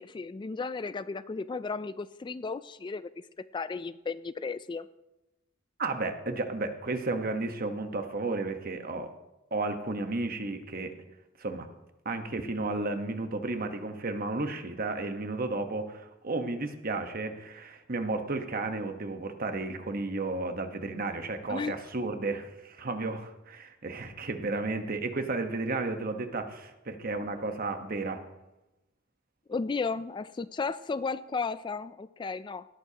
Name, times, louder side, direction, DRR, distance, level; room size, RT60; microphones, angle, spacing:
voice 1, 0.0-3.1 3.5-4.9 21.5-21.9 29.5-32.7, left 4 dB, 25° left, 14 dB, 0.3 m, -34 dB
voice 2, 5.8-9.1 9.5-10.9 11.4-11.7 12.0-28.2, right 3 dB, 50° right, 7 dB, 1.2 m, -33 dB
18.0 x 13.0 x 2.9 m, 0.98 s
head